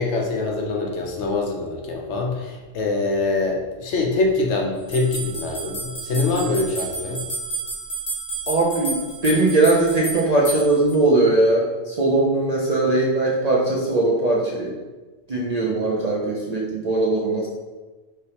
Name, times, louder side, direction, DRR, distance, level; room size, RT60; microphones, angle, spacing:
voice 1, 0.0-7.2, left 3 dB, 65° left, 0 dB, 1.0 m, -24 dB
sound 1, 4.9-11.0, right 3 dB, 25° left, 1.0 m, -31 dB
voice 2, 8.5-9.0 9.2-14.7 15.3-17.5, right 2 dB, 45° right, -5 dB, 0.5 m, -20 dB
5.0 x 3.3 x 2.9 m, 1.3 s
omnidirectional pair, 1.3 m